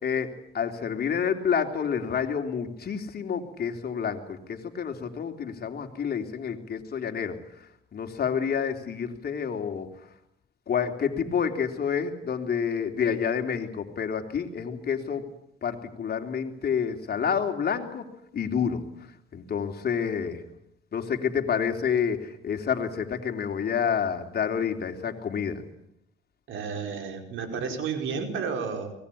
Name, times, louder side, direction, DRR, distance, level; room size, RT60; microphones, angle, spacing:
voice 1, 0.0-7.4 7.9-9.9 10.7-15.2 15.6-18.1 18.3-18.8 19.3-20.4 20.9-25.6, left 7 dB, 50° left, 5 dB, 3.4 m, -28 dB
voice 2, 26.5-28.9, right 5 dB, 80° right, 6 dB, 5.0 m, -32 dB
24.5 x 19.5 x 8.6 m, 0.77 s
cardioid pair, 90°, 20 cm